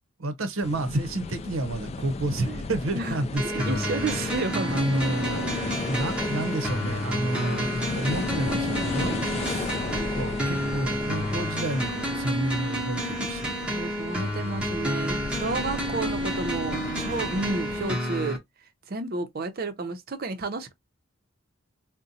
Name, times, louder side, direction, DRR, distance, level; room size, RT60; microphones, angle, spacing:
voice 1, 0.2-4.2 4.5-13.7, right 1 dB, 90° right, 0.7 m, -30 dB
sound 1, 0.6-17.9, left 3 dB, 30° left, 0.3 m, -35 dB
voice 2, 2.9-4.8 5.3-5.4 13.7-18.4 18.9-20.7, right 3 dB, 50° right, 0.6 m, -31 dB
sound 2, 3.4-18.4, equal, 5° right, 0.8 m, -30 dB
3.9 x 2.1 x 2.6 m
head